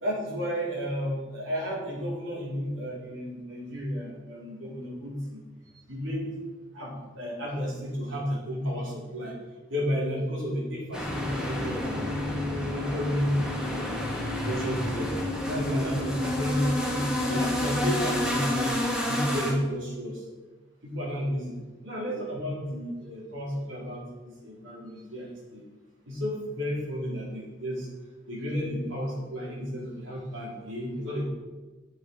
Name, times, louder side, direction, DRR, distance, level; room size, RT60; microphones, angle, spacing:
voice 1, 0.0-5.4 5.9-6.3 6.7-9.4 9.7-12.2 12.5-14.0 14.3-15.1 15.4-18.7 19.1-20.2 20.8-25.6 26.1-27.9 28.3-31.3, equal, 90° right, -4 dB, 4.0 m, -32 dB
sound 1, 10.9-19.5, left 1 dB, 5° right, 1.9 m, -29 dB
9.8 x 8.7 x 5.4 m, 1.3 s
head